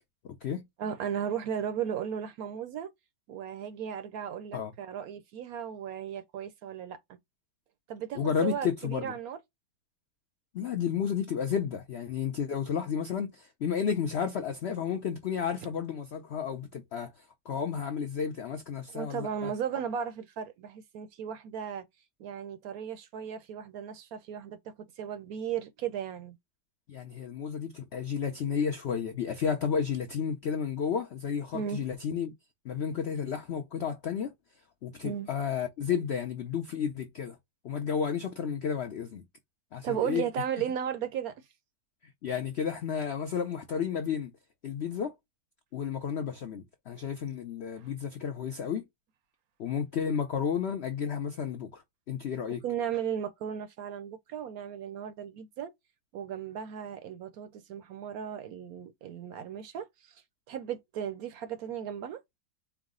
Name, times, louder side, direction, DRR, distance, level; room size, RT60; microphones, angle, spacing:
voice 1, 0.2-0.6 4.5-4.7 8.1-9.1 10.5-17.1 17.5-19.5 26.9-32.3 32.6-34.3 34.8-37.4 37.6-39.2 39.7-40.2 42.2-44.3 44.6-45.1 45.7-48.8 49.6-51.8 52.1-52.6, left 7 dB, 75° left, 0.6 m, -32 dB
voice 2, 0.8-2.9 3.3-7.2 7.9-9.4 18.9-21.8 22.2-26.4 31.5-31.8 35.0-35.3 39.8-41.4 47.8-47.9 52.6-55.7 56.1-62.2, right 8 dB, 70° right, 0.9 m, -36 dB
4.7 x 2.0 x 3.6 m
omnidirectional pair, 1.9 m